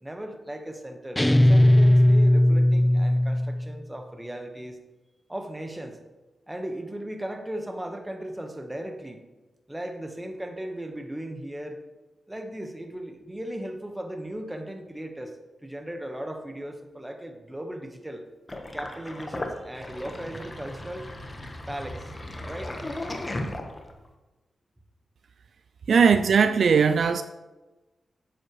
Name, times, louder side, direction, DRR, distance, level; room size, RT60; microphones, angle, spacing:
voice 1, 0.0-4.8 5.3-6.0 6.5-9.2 9.7-11.8 12.3-18.2 18.6-21.1 21.7-22.1 22.4-22.8 26.2-26.3, right 1 dB, 10° right, 1.3 m, -37 dB
sound 1, 1.2-3.7, left 1 dB, 10° left, 0.3 m, -18 dB
Sink (filling or washing), 18.5-24.1, left 1 dB, 30° left, 1.2 m, -36 dB
voice 2, 25.9-27.2, right 6 dB, 70° right, 0.4 m, -19 dB
9.9 x 7.9 x 3.2 m
cardioid pair, 55°, 0 cm